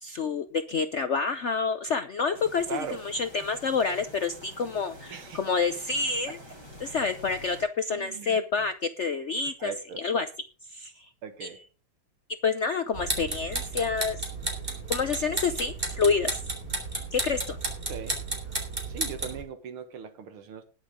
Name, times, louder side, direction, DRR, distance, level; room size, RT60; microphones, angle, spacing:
voice 1, 0.0-6.4 6.8-10.3 10.7-11.1 11.4-11.5 12.4-14.2 14.9-16.4 17.1-17.6, left 5 dB, 75° left, 9 dB, 0.6 m, -28 dB
sound 1, 2.3-7.6, equal, 50° right, 4.8 m, -48 dB
voice 2, 2.7-3.0 5.1-5.4 7.9-8.4 9.6-10.0 11.2-11.6 17.9-18.2 18.9-20.6, right 7 dB, 80° right, 9 dB, 2.2 m, -39 dB
sound 2, 12.9-19.4, right 2 dB, 25° right, 3.5 m, -33 dB
20.0 x 7.2 x 3.6 m, 0.32 s
omnidirectional pair, 2.3 m